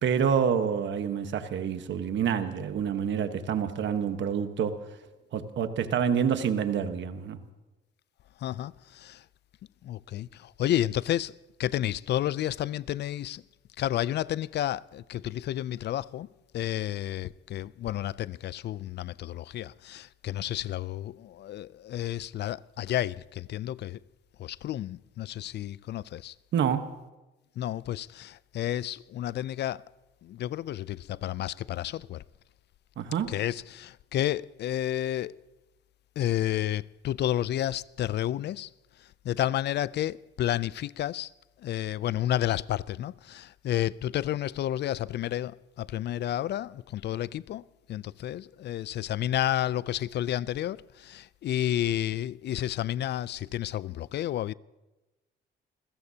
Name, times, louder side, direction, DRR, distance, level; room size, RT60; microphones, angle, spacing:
voice 1, 0.0-4.8 5.3-7.4 26.5-26.9 33.0-33.3, right 7 dB, 65° right, 1.2 m, -27 dB
voice 2, 8.4-9.2 9.8-11.3 11.6-13.4 13.8-16.3 16.5-24.0 24.4-26.3 27.6-29.8 30.2-32.2 33.3-35.4 36.2-38.7 39.2-41.3 41.6-47.6 47.9-54.5, left 12 dB, 60° left, 0.4 m, -31 dB
27.5 x 16.0 x 2.8 m
cardioid pair, 90°, 20 cm